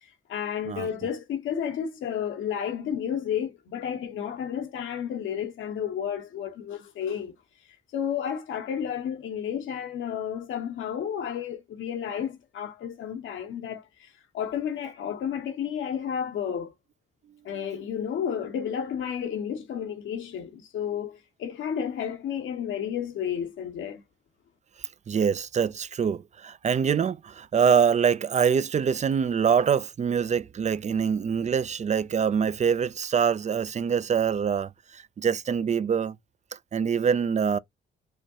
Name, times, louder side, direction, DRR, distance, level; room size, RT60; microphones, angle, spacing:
voice 1, 0.3-7.3 7.9-16.7 17.4-24.0, left 8 dB, 80° left, 1.1 m, -32 dB
voice 2, 25.1-36.2 36.7-37.6, right 7 dB, 35° right, 0.4 m, -24 dB
4.9 x 2.3 x 2.8 m
cardioid pair, 70°, 20 cm